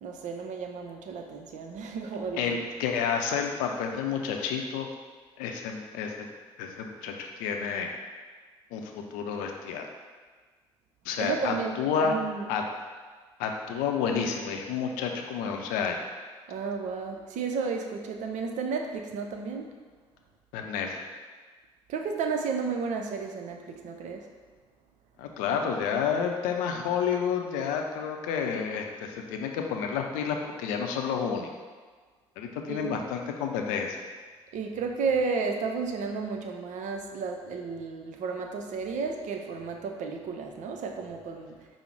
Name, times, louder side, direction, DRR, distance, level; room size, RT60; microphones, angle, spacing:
voice 1, 0.0-2.6 11.2-11.7 12.0-12.5 16.5-19.7 21.9-24.3 32.7-33.0 34.5-41.7, right 5 dB, 60° right, 3 dB, 0.5 m, -32 dB
voice 2, 2.4-4.9 5.4-6.3 6.6-8.0 8.7-9.9 11.0-12.2 12.5-12.6 13.4-16.0 20.5-21.1 25.2-31.5 32.4-34.0, left 6 dB, 70° left, 3 dB, 0.5 m, -30 dB
5.1 x 2.0 x 4.5 m, 1.4 s
hypercardioid pair, 45°, 14 cm